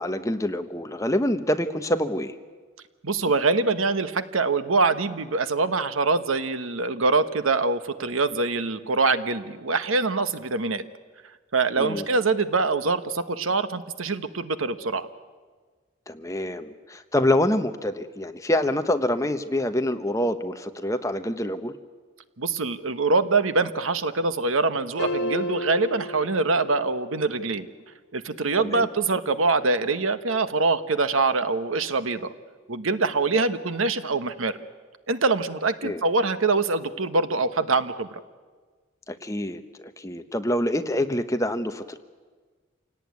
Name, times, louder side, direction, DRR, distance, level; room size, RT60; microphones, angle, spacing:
voice 1, 0.0-2.3 11.8-12.0 16.1-21.7 28.6-28.9 35.8-36.0 39.1-42.0, left 1 dB, 15° left, 8 dB, 1.0 m, -26 dB
voice 2, 3.0-10.8 11.5-15.1 22.4-27.7 28.1-32.3 32.7-34.6 35.1-38.2, right 3 dB, 85° right, 11 dB, 1.2 m, -24 dB
sound 1, 25.0-27.2, equal, 55° left, 2.3 m, -32 dB
27.5 x 17.5 x 9.6 m, 1.5 s
head